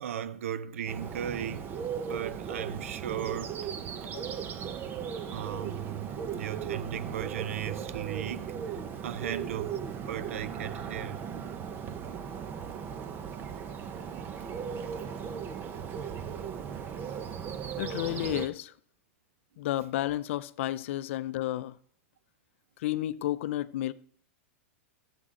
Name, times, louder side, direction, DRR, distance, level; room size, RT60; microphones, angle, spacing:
voice 1, 0.0-1.7 2.1-3.7 4.0-4.2 5.3-11.2 14.4-14.5, right 9 dB, 85° right, 0.7 m, -37 dB
Bird, 0.9-18.5, right 7 dB, 30° right, 0.8 m, -37 dB
voice 2, 17.8-18.7 19.6-21.8 22.8-23.9, left 14 dB, 65° left, 0.5 m, -32 dB
13.0 x 7.4 x 3.8 m
supercardioid pair, 135°, 7 cm